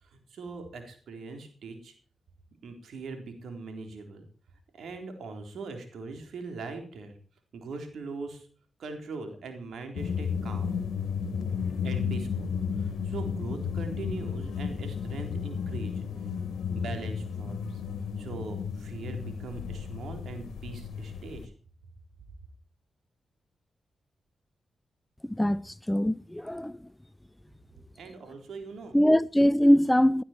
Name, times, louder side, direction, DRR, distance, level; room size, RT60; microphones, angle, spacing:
voice 1, 0.0-1.9 2.6-4.3 4.7-7.1 7.5-8.5 8.8-10.8 11.8-16.1 16.7-17.8 18.2-21.5 28.0-28.9, right 3 dB, 75° right, 3.8 m, -41 dB
sound 1, 10.0-21.5, left 6 dB, 80° left, 1.6 m, -33 dB
voice 2, 25.2-26.8 28.9-30.2, equal, 10° left, 0.5 m, -22 dB
16.5 x 11.5 x 4.5 m
supercardioid pair, 40°, 0 cm